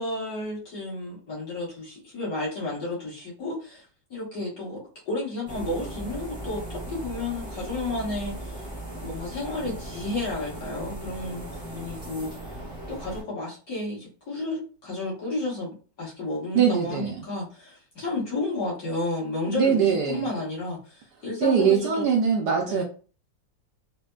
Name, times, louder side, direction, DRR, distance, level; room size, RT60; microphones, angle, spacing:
voice 1, 0.0-3.8 4.1-4.8 5.1-8.7 9.0-12.6 12.9-22.0 22.7-22.8, left 2 dB, 50° left, -6 dB, 1.8 m, -32 dB
sound 1, 5.5-13.2, right 1 dB, 5° right, 0.5 m, -38 dB
voice 2, 16.5-17.2 19.5-20.3 21.4-22.8, right 7 dB, 70° right, 1 dB, 1.0 m, -22 dB
4.1 x 2.1 x 2.3 m, 0.36 s
omnidirectional pair, 2.0 m